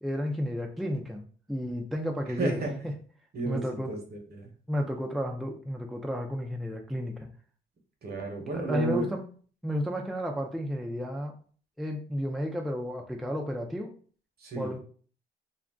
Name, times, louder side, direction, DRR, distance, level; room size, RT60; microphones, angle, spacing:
voice 1, 0.0-2.6 3.5-3.9 4.7-7.1 8.5-9.2 9.6-11.3 11.8-13.9 14.6-14.8, equal, ahead, 2 dB, 0.4 m, -32 dB
voice 2, 2.3-2.7 3.3-4.5 8.0-9.1 14.4-14.8, right 2 dB, 55° right, 2 dB, 0.9 m, -33 dB
2.5 x 2.1 x 3.4 m, 0.43 s
cardioid pair, 90°, 20 cm